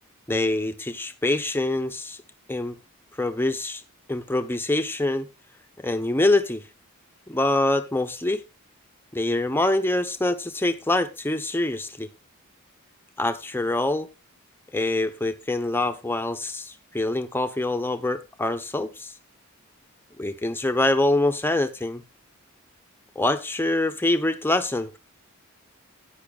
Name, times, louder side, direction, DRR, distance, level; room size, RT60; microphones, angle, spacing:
voice 1, 0.3-2.2 2.5-2.8 3.2-3.8 4.1-5.3 5.8-6.6 7.3-8.4 9.1-12.1 13.2-14.1 14.7-19.1 20.2-22.0 23.2-25.0, left 2 dB, 10° left, 0.9 m, -25 dB
14.0 x 9.8 x 2.4 m
head